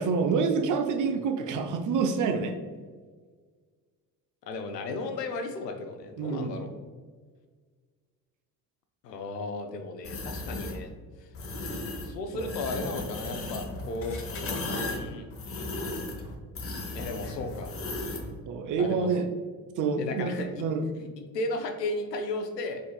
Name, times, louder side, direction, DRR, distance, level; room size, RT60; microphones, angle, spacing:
voice 1, 0.0-2.6 6.2-6.6 12.3-12.5 18.5-19.3 19.8-20.8, right 5 dB, 40° right, 6 dB, 0.6 m, -27 dB
voice 2, 4.4-6.7 9.0-10.9 11.2-11.3 12.0-14.2 14.8-16.2 16.9-17.8 18.8-19.1 20.0-20.6 21.3-22.8, left 2 dB, 85° left, 5 dB, 0.6 m, -35 dB
sound 1, 10.0-10.8 11.3-12.1 12.4-18.3, left 2 dB, 30° left, 0.9 m, -35 dB
4.9 x 3.7 x 2.3 m, 1.5 s
figure-of-eight pair, 55°, 48 cm